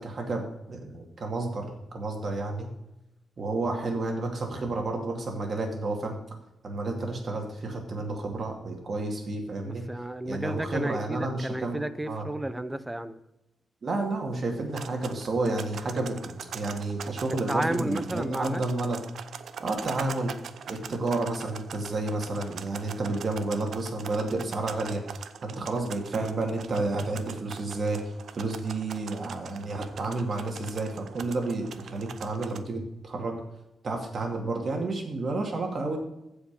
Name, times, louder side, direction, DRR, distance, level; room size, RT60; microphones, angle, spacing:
voice 1, 0.0-2.7 3.4-6.2 6.6-9.8 10.2-12.3 13.8-19.0 19.6-20.3 20.7-25.0 25.4-28.0 28.3-33.4 33.8-36.0, right 2 dB, 40° right, 2.3 m, -31 dB
voice 2, 9.6-13.2 17.5-18.6, right 1 dB, 10° right, 0.6 m, -32 dB
sound 1, 14.7-32.6, right 7 dB, 70° right, 0.6 m, -42 dB
15.0 x 5.1 x 5.3 m
wide cardioid pair, 155°, 0 cm